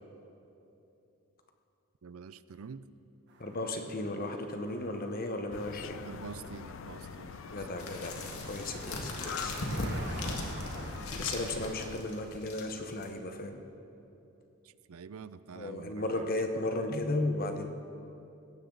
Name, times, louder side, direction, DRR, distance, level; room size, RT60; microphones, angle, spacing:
voice 1, 2.0-2.9 6.0-8.0 10.1-10.4 14.6-16.3, right 5 dB, 80° right, 15 dB, 0.5 m, -47 dB
Car passing by, 3.3-12.3, right 2 dB, 50° right, 1.7 m, -48 dB
voice 2, 3.4-6.0 7.5-8.2 8.5-9.6 11.1-13.6 15.5-17.7, left 2 dB, 40° left, 5 dB, 1.1 m, -35 dB
sound 1, 5.5-12.0, left 7 dB, 60° left, 0.4 m, -44 dB
sound 2, 7.8-13.1, left 1 dB, 85° left, 1.9 m, -38 dB
19.0 x 16.0 x 4.0 m, 2.9 s
head